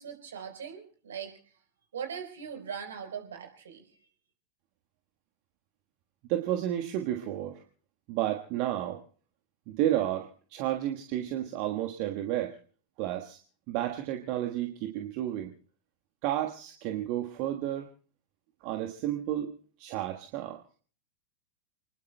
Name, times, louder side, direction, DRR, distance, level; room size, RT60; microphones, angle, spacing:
voice 1, 0.0-1.5 1.9-3.8, right 7 dB, 65° right, 5 dB, 3.9 m, -40 dB
voice 2, 6.3-7.6 8.1-9.0 9.7-12.6 13.0-13.4 13.7-15.5 16.2-17.9 18.6-20.6, right 12 dB, 45° right, 4 dB, 1.4 m, -31 dB
29.0 x 20.0 x 2.2 m, 0.43 s
figure-of-eight pair, 90°, 0 cm